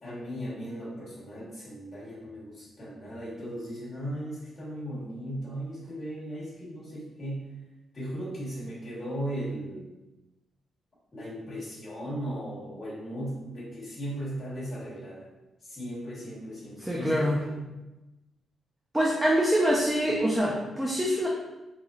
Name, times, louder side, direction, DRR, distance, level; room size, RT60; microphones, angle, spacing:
voice 1, 0.0-7.5 7.9-9.9 11.1-15.3 15.6-17.5, equal, 30° left, -10 dB, 1.1 m, -37 dB
voice 2, 16.8-17.4 18.9-21.3, equal, 5° right, -4 dB, 0.3 m, -25 dB
3.0 x 2.5 x 2.3 m, 1.0 s
wide cardioid pair, 175°, 0 cm